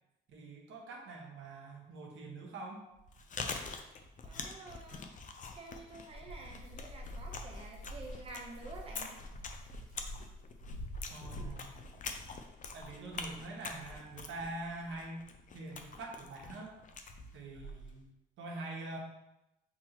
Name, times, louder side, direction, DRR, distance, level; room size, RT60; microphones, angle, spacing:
voice 1, 0.3-2.9 11.1-11.8 12.7-15.2 15.5-16.8 17.3-18.1 18.4-19.0, right 2 dB, 75° right, -1 dB, 1.0 m, -44 dB
Chewing mastication, 2.9-18.0, left 4 dB, 40° left, 0.5 m, -46 dB
voice 2, 4.2-5.1 5.5-9.2, right 2 dB, 30° right, -1 dB, 0.8 m, -49 dB
sound 1, 6.1-14.0, equal, 85° left, 1.3 m, -47 dB
6.0 x 2.9 x 2.9 m, 0.90 s
cardioid pair, 90°, 20 cm